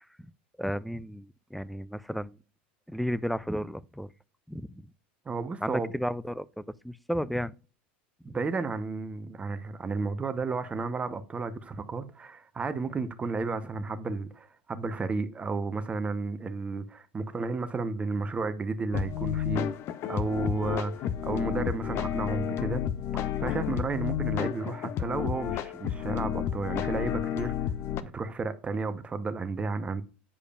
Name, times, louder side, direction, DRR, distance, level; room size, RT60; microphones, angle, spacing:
voice 1, 0.6-2.4 2.9-4.1 4.5-4.9 5.6-7.5 8.3-8.4, equal, ahead, 0.3 m, -33 dB
voice 2, 5.3-5.9 8.2-19.7 20.1-22.8 23.4-27.5 28.0-30.0, right 4 dB, 20° right, 0.9 m, -32 dB
sound 1, 18.9-28.0, left 10 dB, 45° left, 0.6 m, -31 dB
8.6 x 4.9 x 2.4 m
hypercardioid pair, 90°, 6 cm